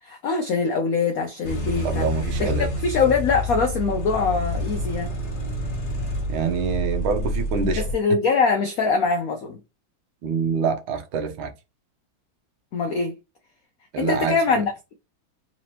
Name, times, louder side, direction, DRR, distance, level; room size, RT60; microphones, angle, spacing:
voice 1, 0.0-2.1 2.4-2.5 2.8-5.1 7.8-9.6 12.7-13.1 14.0-14.9, left 4 dB, 80° left, 0.8 m, -23 dB
sound 1, 1.4-7.9, equal, 40° left, 1.1 m, -28 dB
voice 2, 1.8-2.7 6.3-7.8 10.2-11.5 13.9-14.4, right 5 dB, 80° right, 1.6 m, -25 dB
3.9 x 3.0 x 2.8 m
omnidirectional pair, 2.3 m